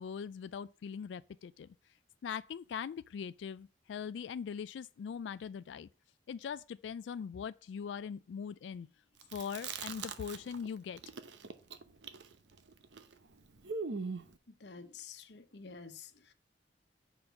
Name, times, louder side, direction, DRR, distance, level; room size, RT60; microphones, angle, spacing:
voice 1, 0.0-1.7 2.2-5.9 6.3-8.9 9.3-11.0, left 7 dB, 90° left, 0.3 m, -41 dB
Chewing mastication, 9.2-10.7 11.0-14.3, right 4 dB, 85° right, 0.9 m, -42 dB
voice 2, 14.5-16.3, left 5 dB, 70° left, 1.0 m, -50 dB
6.2 x 5.1 x 6.9 m
head